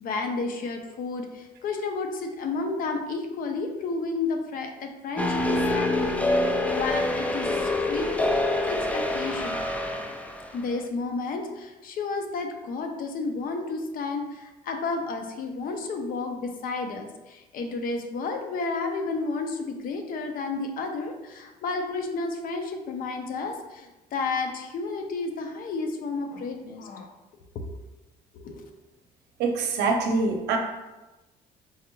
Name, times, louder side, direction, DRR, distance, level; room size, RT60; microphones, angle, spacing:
voice 1, 0.0-6.2 6.4-8.2 8.6-9.6 10.5-27.1 27.5-27.6 28.3-28.6, left 3 dB, 55° left, 4 dB, 0.6 m, -32 dB
sound 1, 5.2-10.5, left 2 dB, 10° left, 0.3 m, -26 dB
voice 2, 29.4-30.6, right 3 dB, 75° right, 3 dB, 0.6 m, -24 dB
4.7 x 2.9 x 2.2 m, 1.1 s
cardioid pair, 110°, 17 cm